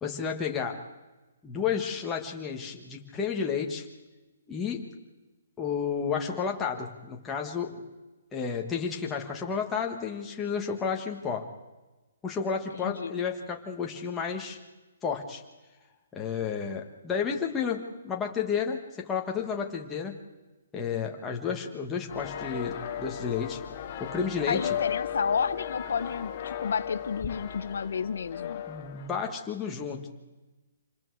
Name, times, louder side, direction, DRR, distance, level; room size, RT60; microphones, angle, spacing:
voice 1, 0.0-0.9 1.4-3.9 4.5-4.9 5.6-7.8 8.3-11.5 12.2-14.6 15.0-15.4 16.1-20.2 20.7-23.6 24.0-24.7 28.7-30.1, left 6 dB, 10° left, 0 dB, 1.5 m, -31 dB
voice 2, 12.7-13.1 24.5-28.6, left 6 dB, 60° left, 13 dB, 0.7 m, -31 dB
sound 1, 22.1-29.1, left 9 dB, 25° left, 1.3 m, -36 dB
27.0 x 21.0 x 4.8 m, 1.1 s
hypercardioid pair, 175°, 0 cm